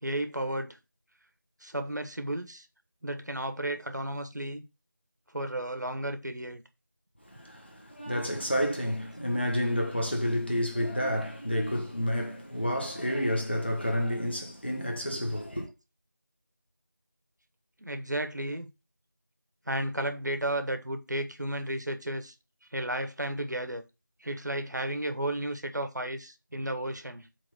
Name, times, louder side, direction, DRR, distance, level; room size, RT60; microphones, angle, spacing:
voice 1, 0.0-0.8 1.6-2.7 3.0-4.6 5.3-6.6 17.8-18.7 19.7-22.3 22.7-23.8 24.2-27.3, right 1 dB, 60° right, 1.2 m, -33 dB
voice 2, 7.2-15.7, equal, 30° left, 1.5 m, -30 dB
8.1 x 3.7 x 5.7 m
figure-of-eight pair, 180°, 11 cm